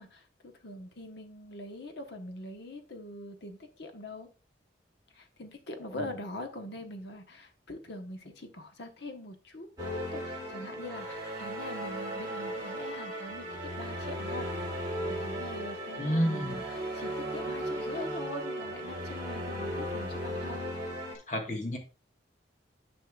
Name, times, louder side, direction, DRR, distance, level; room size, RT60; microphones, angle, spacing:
voice 1, 0.0-4.3 5.1-14.5 14.8-20.8, left 1 dB, 70° left, 1.1 m, -43 dB
sound 1, 9.8-21.2, right 1 dB, 20° right, 2.8 m, -36 dB
voice 2, 16.0-16.6 21.3-21.8, equal, 40° left, 1.5 m, -30 dB
9.6 x 5.6 x 2.3 m
head